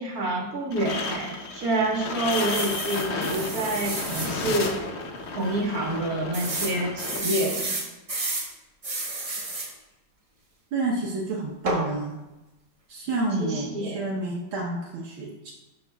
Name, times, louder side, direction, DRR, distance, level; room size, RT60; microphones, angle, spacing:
voice 1, 0.0-4.8 5.3-7.6 13.4-14.0, right 1 dB, 45° right, -3 dB, 2.1 m, -28 dB
sound 1, 0.7-7.2, left 3 dB, 75° left, 0.6 m, -32 dB
sound 2, 2.3-4.3 4.9-5.0 5.2-5.3 6.3-8.5 8.8-9.7 11.7-11.9, right 2 dB, 30° right, 0.6 m, -31 dB
voice 2, 10.7-12.2 12.9-15.5, right 2 dB, 75° right, -3 dB, 1.8 m, -29 dB
12.0 x 6.9 x 2.3 m, 1.0 s
omnidirectional pair, 2.3 m